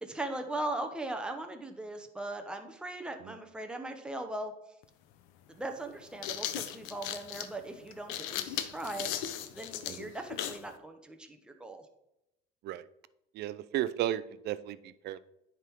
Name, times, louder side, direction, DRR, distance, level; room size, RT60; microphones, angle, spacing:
voice 1, 0.0-4.5 5.5-9.1 9.5-11.9, right 2 dB, 5° right, 4 dB, 0.9 m, -39 dB
sound 1, 4.8-4.9 5.9-10.7, left 11 dB, 80° left, 0.7 m, -37 dB
voice 2, 13.4-14.8 15.0-15.2, right 12 dB, 55° right, 16 dB, 0.5 m, -33 dB
9.6 x 3.7 x 4.5 m, 0.85 s
cardioid pair, 115°, 20 cm